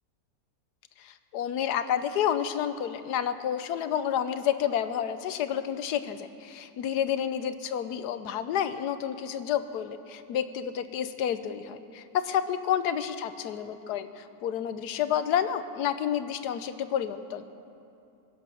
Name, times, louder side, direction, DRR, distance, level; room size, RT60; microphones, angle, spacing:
voice 1, 1.0-17.4, left 9 dB, 90° left, 11 dB, 1.3 m, -30 dB
22.0 x 10.5 x 6.2 m, 2.6 s
omnidirectional pair, 1.7 m